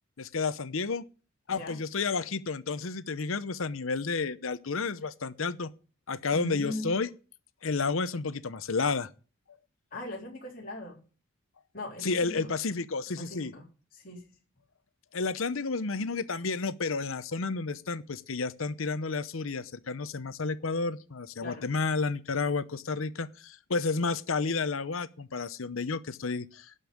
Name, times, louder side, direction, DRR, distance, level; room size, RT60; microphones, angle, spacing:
voice 1, 0.2-1.0 1.5-5.7 6.1-7.1 7.6-9.1 12.0-13.5 15.1-26.7, left 4 dB, 75° left, 0.8 m, -31 dB
voice 2, 6.3-6.9 9.9-11.0 11.7-12.5 13.2-13.7 13.9-14.4 21.4-21.7, left 1 dB, 40° left, 3.8 m, -40 dB
12.0 x 5.4 x 8.6 m
head